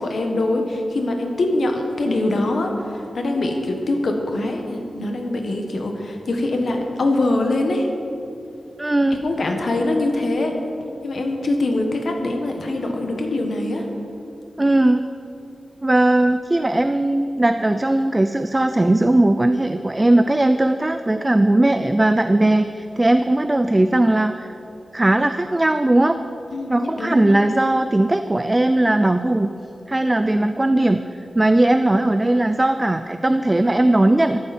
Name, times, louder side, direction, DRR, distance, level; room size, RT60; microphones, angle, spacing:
voice 1, 0.0-7.9 9.1-10.6 11.0-13.9 26.5-27.3, left 2 dB, 60° left, 3 dB, 1.4 m, -23 dB
voice 2, 8.8-9.2 14.6-15.1 15.8-24.5 24.9-26.2 26.7-29.5 29.9-31.0 31.3-34.4, right 1 dB, 15° right, 9 dB, 0.3 m, -18 dB
14.5 x 11.0 x 4.3 m, 2.7 s
wide cardioid pair, 155°, 0 cm